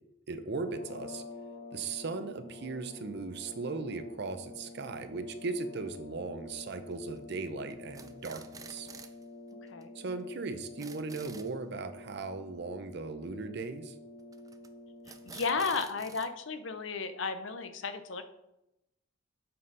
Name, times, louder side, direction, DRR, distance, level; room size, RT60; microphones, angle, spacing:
voice 1, 0.3-1.2 1.7-8.9 9.9-13.9, right 3 dB, 55° right, 9 dB, 0.7 m, -38 dB
sound 1, 0.5-15.7, left 2 dB, 35° left, 0.8 m, -49 dB
sound 2, 6.9-7.3 7.7-9.2 9.5-9.6 9.8-9.9 10.2-10.3 10.5-11.5 14.3-14.7 15.0-16.3, right 5 dB, 20° right, 0.4 m, -49 dB
voice 2, 15.2-18.2, left 4 dB, 70° left, 9 dB, 0.7 m, -33 dB
7.5 x 4.2 x 5.4 m, 0.88 s
head